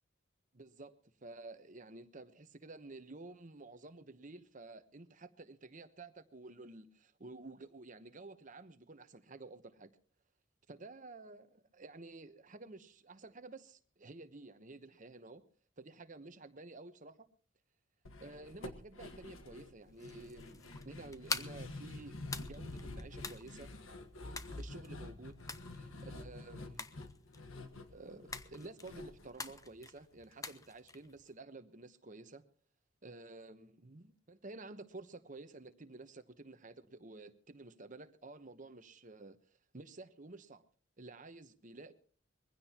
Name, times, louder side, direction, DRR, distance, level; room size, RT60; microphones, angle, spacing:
voice 1, 0.5-0.9 1.2-9.9 10.7-15.4 15.8-17.2 18.2-23.7 24.6-25.4 25.7-26.9 27.9-32.4 33.0-39.4 39.7-40.6 41.0-41.9, right 2 dB, 40° right, 1.0 m, -52 dB
sound 1, 18.1-30.3 30.6-30.7 31.1-31.2, left 2 dB, 85° left, 1.4 m, -48 dB
sound 2, 19.8-31.3, left 4 dB, 15° left, 0.7 m, -47 dB
22.0 x 16.0 x 2.9 m
head